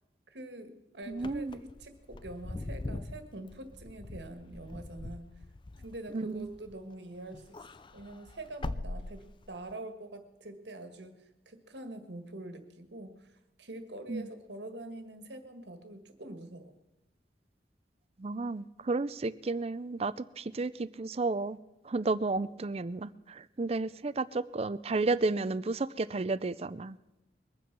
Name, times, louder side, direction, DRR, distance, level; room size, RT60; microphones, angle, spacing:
voice 1, 0.3-5.3 5.8-7.6 7.9-11.2 11.4-16.7, right 1 dB, 80° right, 8 dB, 1.7 m, -45 dB
Wind / Car, 1.1-6.9 7.3-9.7, left 2 dB, 30° left, 0.5 m, -42 dB
voice 2, 1.1-1.6 6.1-6.5 14.1-14.3 18.2-21.6 21.8-27.0, right 3 dB, 35° right, 17 dB, 0.5 m, -32 dB
22.0 x 9.3 x 6.0 m, 1.0 s
head